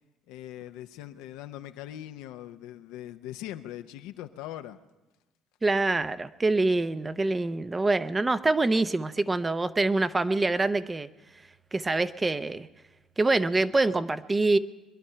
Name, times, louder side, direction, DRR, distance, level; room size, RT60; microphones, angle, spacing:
voice 1, 0.3-4.8, left 13 dB, 80° left, 9 dB, 0.7 m, -41 dB
voice 2, 5.6-11.1 11.7-12.7 13.2-14.6, right 2 dB, 20° right, 12 dB, 0.6 m, -25 dB
22.5 x 10.5 x 5.7 m, 1.1 s
supercardioid pair, 75°, 0 cm